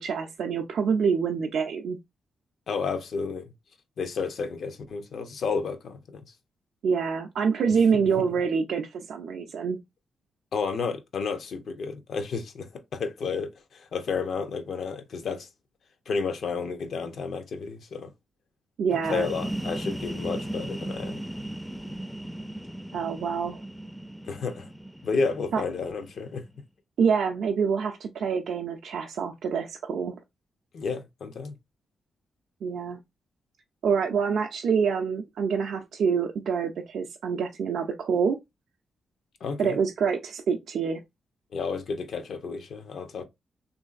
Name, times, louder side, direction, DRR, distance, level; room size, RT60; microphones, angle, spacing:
voice 1, 0.0-2.0 6.8-9.8 18.8-19.3 22.9-23.6 25.5-25.6 27.0-30.2 32.6-33.0 33.8-38.4 39.6-41.0, right 6 dB, 75° right, 0.4 m, -26 dB
voice 2, 2.7-3.5 4.0-6.2 8.2-8.3 10.5-15.5 16.1-18.1 19.1-21.2 24.2-24.7 25.0-26.4 30.7-31.5 39.4-39.8 41.5-43.2, left 5 dB, 70° left, 0.6 m, -31 dB
sound 1, 18.9-26.5, right 1 dB, ahead, 0.4 m, -37 dB
3.1 x 2.5 x 2.4 m
supercardioid pair, 55°, 0 cm